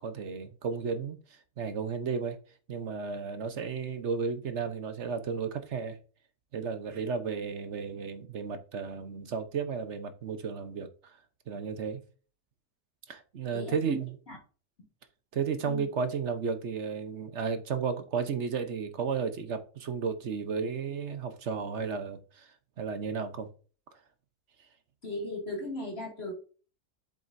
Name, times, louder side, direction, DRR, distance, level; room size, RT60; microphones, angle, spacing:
voice 1, 0.0-2.4 2.7-6.0 6.5-11.2 11.5-12.0 13.1-14.1 15.3-23.5, right 5 dB, 55° right, 1.1 m, -33 dB
voice 2, 13.5-14.0 14.3-14.4 15.7-15.9 25.0-26.3, left 1 dB, 40° left, 2.7 m, -37 dB
7.7 x 7.3 x 2.7 m
omnidirectional pair, 1.6 m